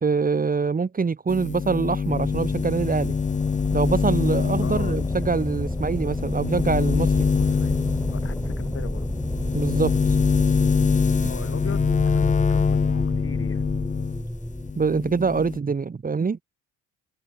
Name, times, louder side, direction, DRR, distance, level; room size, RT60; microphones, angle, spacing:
voice 1, 0.0-3.1 3.7-7.3 9.5-9.9 14.7-16.4, right 5 dB, 30° right, 1.5 m, -24 dB
sound 1, 1.3-14.2 14.6-15.6, left 5 dB, 25° left, 0.7 m, -24 dB
sound 2, 2.1-14.7, left 1 dB, 5° left, 1.7 m, -30 dB
voice 2, 4.6-5.0 7.3-7.8 8.1-9.1 11.3-13.7, left 7 dB, 45° left, 6.3 m, -39 dB
open air
cardioid pair, 90°, 30 cm